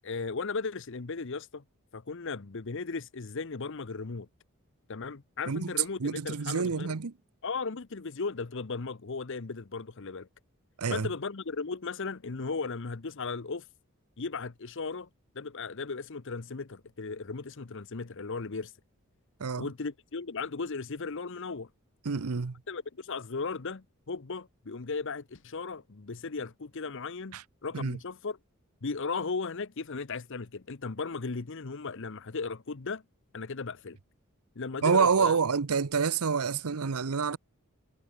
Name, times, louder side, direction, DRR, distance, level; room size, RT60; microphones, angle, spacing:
voice 1, 0.0-1.6 1.9-4.3 4.9-6.9 7.4-10.3 10.9-13.6 14.2-15.1 15.3-18.7 19.6-21.7 22.7-28.4 28.8-33.0 33.3-34.0 34.6-35.3, left 4 dB, 60° left, 0.8 m, -36 dB
voice 2, 6.0-7.1 10.8-11.1 19.4-19.7 22.0-22.6 27.3-27.4 27.7-28.0 34.8-37.4, right 5 dB, 90° right, 0.8 m, -27 dB
head